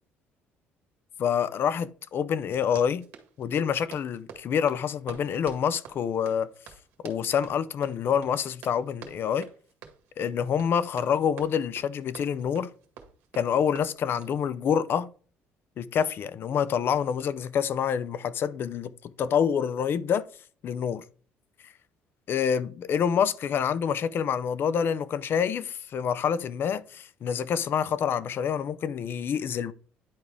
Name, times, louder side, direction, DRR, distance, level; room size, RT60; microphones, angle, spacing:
voice 1, 1.2-3.1 3.4-6.5 7.0-9.5 10.2-12.7 13.3-15.1 15.8-20.3 20.6-21.0 21.6-21.7 22.3-29.7, left 8 dB, 55° left, 0.6 m, -27 dB
Run, 2.6-14.4, right 7 dB, 85° right, 1.8 m, -48 dB
10.5 x 4.7 x 3.5 m
supercardioid pair, 85°, 4 cm